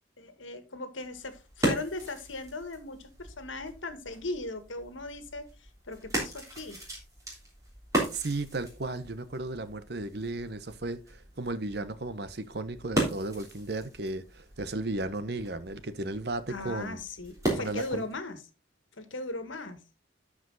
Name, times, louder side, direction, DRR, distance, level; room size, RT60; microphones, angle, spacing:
voice 1, 0.2-6.8 16.5-18.4 19.0-19.8, left 2 dB, 80° left, 1.6 m, -38 dB
sound 1, 1.0-18.2, right 1 dB, 15° right, 3.4 m, -37 dB
voice 2, 8.1-17.0 17.6-18.0, right 2 dB, 55° right, 0.8 m, -35 dB
12.5 x 5.0 x 3.9 m
head